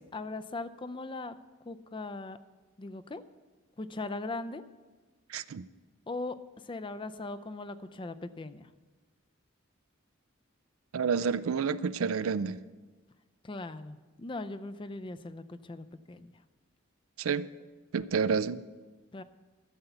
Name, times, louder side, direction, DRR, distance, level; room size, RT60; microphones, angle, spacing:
voice 1, 0.0-1.3 1.7-2.4 2.8-3.2 3.8-4.6 6.1-6.4 6.6-8.7 13.4-16.3 19.1-19.2, left 2 dB, 25° left, 11 dB, 0.4 m, -39 dB
voice 2, 5.3-5.6 10.9-12.6 17.2-17.5 17.9-18.6, right 6 dB, 90° right, 15 dB, 0.5 m, -29 dB
13.0 x 6.9 x 7.9 m, 1.3 s
head